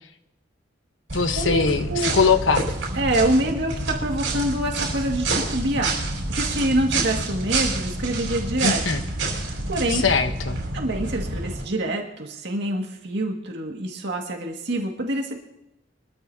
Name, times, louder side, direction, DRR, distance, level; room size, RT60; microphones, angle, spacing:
voice 1, 1.1-2.6 8.6-9.0 9.9-10.6, left 5 dB, 85° left, 7 dB, 1.2 m, -21 dB
sound 1, 1.1-11.6, right 2 dB, 90° right, 5.5 m, -28 dB
voice 2, 3.0-6.0 6.3-8.8 9.7-10.1 10.7-15.4, right 1 dB, 65° right, 1 dB, 2.1 m, -26 dB
24.0 x 13.5 x 2.9 m, 0.85 s
head